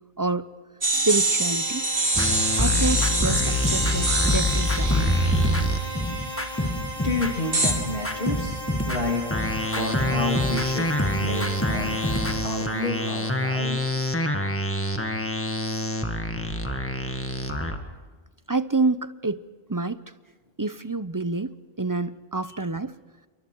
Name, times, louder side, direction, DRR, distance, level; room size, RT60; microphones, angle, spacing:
voice 1, 0.2-0.5 1.1-1.8 2.6-5.2 18.5-19.4 19.7-20.0 20.6-22.9, right 3 dB, 25° right, 13 dB, 0.5 m, -28 dB
sound 1, 0.8-6.5 7.5-7.7, right 2 dB, 45° right, 3.2 m, -26 dB
sound 2, 0.9-13.6, equal, 85° right, 5.6 m, -37 dB
sound 3, 2.1-7.4 7.6-17.8, left 1 dB, 10° left, 1.7 m, -26 dB
voice 2, 7.0-12.0 12.4-13.9, left 2 dB, 45° left, 2 dB, 3.2 m, -30 dB
28.0 x 23.5 x 4.6 m, 1.3 s
omnidirectional pair, 1.3 m